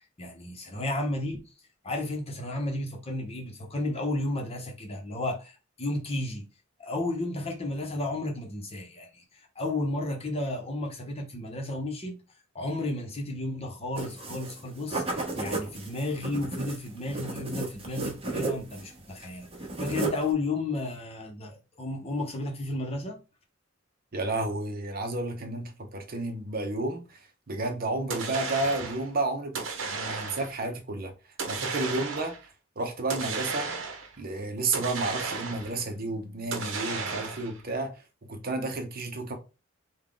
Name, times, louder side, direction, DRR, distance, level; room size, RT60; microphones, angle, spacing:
voice 1, 0.2-1.4 1.8-6.4 6.8-9.2 9.6-12.2 12.5-19.5 19.8-23.2, left 2 dB, 30° left, 0.8 m, -33 dB
sound 1, 14.0-14.6 14.9-18.9 19.2-20.3, right 2 dB, 30° right, 0.9 m, -33 dB
voice 2, 24.1-27.0 27.5-31.1 31.5-32.3 32.8-33.7 34.2-37.9 38.3-39.3, right 2 dB, 50° right, 0.7 m, -31 dB
sound 2, 28.1-29.1 29.5-30.6 31.4-32.4 33.1-34.2 34.7-35.8 36.5-37.6, right 4 dB, 80° right, 0.7 m, -34 dB
3.6 x 2.3 x 3.7 m
head